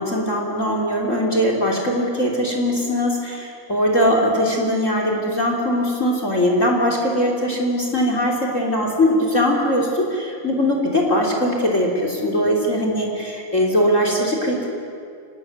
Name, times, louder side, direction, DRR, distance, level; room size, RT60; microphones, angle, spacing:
voice 1, 0.0-14.7, equal, 20° left, 1 dB, 3.3 m, -20 dB
24.5 x 19.5 x 9.5 m, 2.4 s
omnidirectional pair, 3.9 m